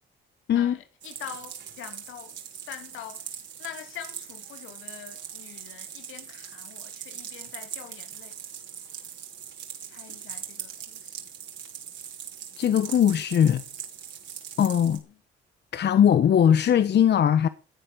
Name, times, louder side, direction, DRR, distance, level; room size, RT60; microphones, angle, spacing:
voice 1, 0.5-2.4 2.6-3.2 3.6-8.3 9.9-11.2 14.9-15.0, left 10 dB, 85° left, 2.8 m, -44 dB
sound 1, 1.0-15.0, right 8 dB, 65° right, 5.8 m, -41 dB
voice 2, 12.6-13.6 14.6-15.0 15.7-17.5, left 9 dB, 60° left, 1.3 m, -20 dB
18.5 x 8.4 x 7.0 m
cardioid pair, 90°, 20 cm